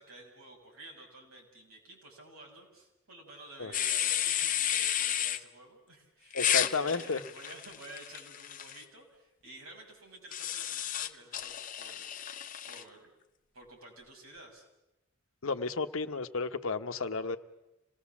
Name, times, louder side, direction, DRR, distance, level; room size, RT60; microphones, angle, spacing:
voice 1, 0.0-12.1 12.5-13.1 13.5-14.6, right 2 dB, 80° right, 0 dB, 6.6 m, -51 dB
sound 1, 3.7-5.4 6.3-8.8 10.3-12.8, left 10 dB, 40° left, 0.7 m, -32 dB
voice 2, 6.3-7.2 15.4-17.4, left 4 dB, 70° left, 8 dB, 1.1 m, -32 dB
27.0 x 19.0 x 7.2 m, 0.95 s
head